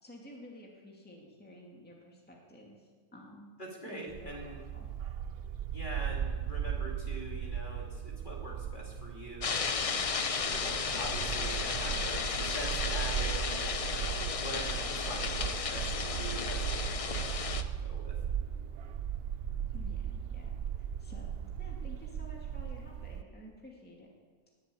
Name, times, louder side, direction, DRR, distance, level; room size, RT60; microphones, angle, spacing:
voice 1, 0.0-3.5 3.8-4.9 19.7-24.1, equal, 5° left, -2 dB, 2.3 m, -52 dB
voice 2, 3.6-4.6 5.7-9.6 10.3-18.1, equal, 35° left, -2 dB, 2.7 m, -43 dB
Bark, 4.1-23.2, right 8 dB, 60° right, 0.6 m, -37 dB
sound 1, 9.4-17.6, left 5 dB, 50° left, 0.4 m, -34 dB
20.5 x 7.4 x 8.6 m, 1.5 s
omnidirectional pair, 1.5 m